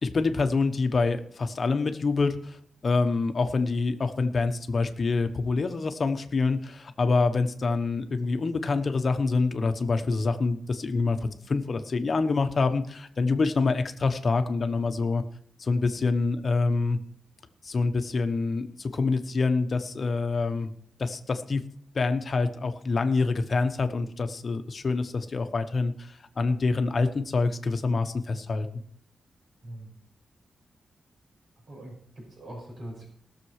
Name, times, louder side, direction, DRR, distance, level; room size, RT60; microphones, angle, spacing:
voice 1, 0.0-2.6 2.8-11.2 11.5-15.2 15.6-17.0 17.6-20.7 21.0-21.6 21.9-28.7, left 3 dB, 45° left, 7 dB, 1.1 m, -26 dB
voice 2, 31.7-33.1, right 1 dB, 60° right, -1 dB, 5.7 m, -42 dB
18.5 x 6.9 x 4.9 m, 0.62 s
wide cardioid pair, 120°, 0 cm